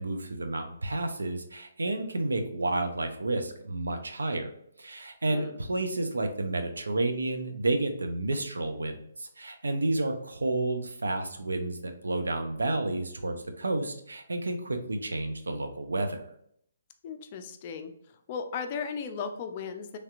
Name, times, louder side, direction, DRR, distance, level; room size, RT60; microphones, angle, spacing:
voice 1, 0.0-4.5 4.8-16.2, right 2 dB, 85° right, 6 dB, 0.5 m, -31 dB
voice 2, 5.3-5.6 17.0-17.9 18.3-20.0, left 6 dB, 40° left, 7 dB, 0.4 m, -36 dB
3.2 x 2.8 x 2.4 m, 0.69 s
hypercardioid pair, 145°, 0 cm